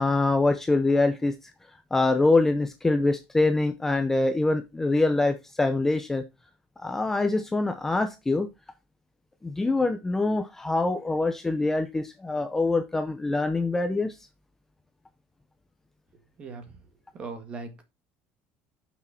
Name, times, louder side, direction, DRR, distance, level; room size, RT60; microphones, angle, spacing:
voice 1, 0.0-1.5 1.9-6.2 6.8-8.5 9.4-14.2, left 2 dB, 10° left, 8 dB, 0.6 m, -24 dB
voice 2, 16.4-16.8 17.1-17.8, right 4 dB, 30° right, 7 dB, 1.9 m, -39 dB
7.7 x 6.2 x 4.3 m, 0.24 s
cardioid pair, 170°, 4 cm